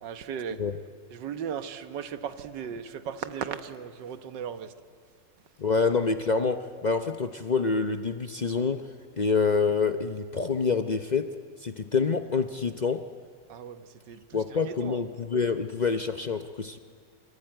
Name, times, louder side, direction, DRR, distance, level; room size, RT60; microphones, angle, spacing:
voice 1, 0.0-0.6 1.1-4.7 13.5-15.0, right 8 dB, 75° right, 10 dB, 1.8 m, -37 dB
voice 2, 5.6-8.8 9.1-11.3 11.6-13.0 14.3-16.8, left 4 dB, 70° left, 8 dB, 0.4 m, -27 dB
27.5 x 23.0 x 9.1 m, 2.1 s
omnidirectional pair, 2.0 m